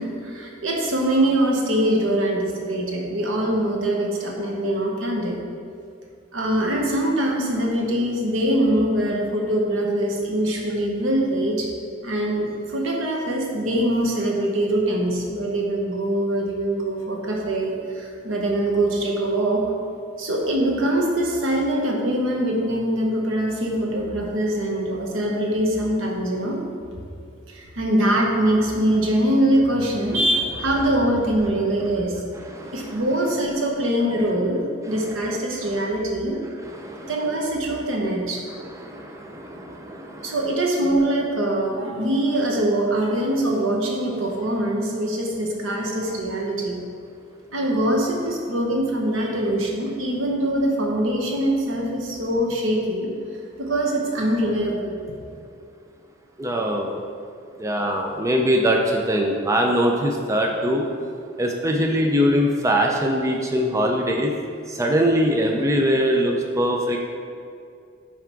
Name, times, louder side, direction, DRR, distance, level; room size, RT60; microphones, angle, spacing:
voice 1, 0.0-5.4 6.3-11.7 12.0-19.6 20.2-26.6 27.5-32.2 32.7-36.4 37.1-38.4 40.2-46.8 47.5-53.1 53.6-55.0, right 1 dB, 80° right, 0 dB, 1.0 m, -23 dB
voice 2, 56.4-57.0 57.6-58.8 59.1-60.8 61.4-64.3 64.8-67.0, equal, 15° right, 1 dB, 0.4 m, -21 dB
5.8 x 4.7 x 4.6 m, 2.5 s
head